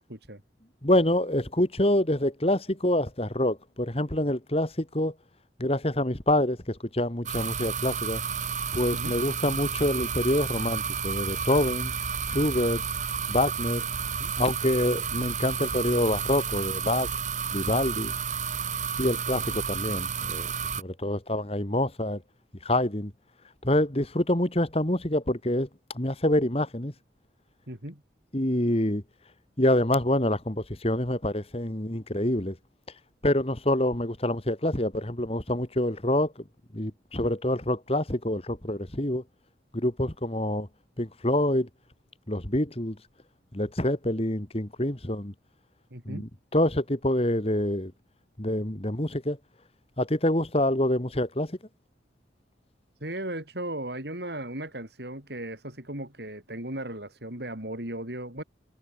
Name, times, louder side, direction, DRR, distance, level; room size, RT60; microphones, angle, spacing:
voice 1, 0.1-0.4 8.9-9.2 14.2-14.3 27.7-28.0 45.9-46.3 53.0-58.4, right 1 dB, 60° right, 6.3 m, -36 dB
voice 2, 0.8-5.1 5.6-8.2 8.7-11.9 12.3-12.8 13.3-13.9 14.4-17.1 17.5-18.1 19.0-20.5 20.8-22.2 22.6-23.1 23.6-25.7 25.9-26.9 28.3-29.0 29.6-32.6 33.2-36.3 36.7-39.2 39.7-40.7 41.0-41.7 42.3-43.0 43.5-45.3 46.1-47.9 48.4-49.4 50.0-51.6, left 1 dB, 30° left, 2.4 m, -26 dB
sound 1, 7.3-20.8, right 6 dB, 40° right, 2.0 m, -31 dB
head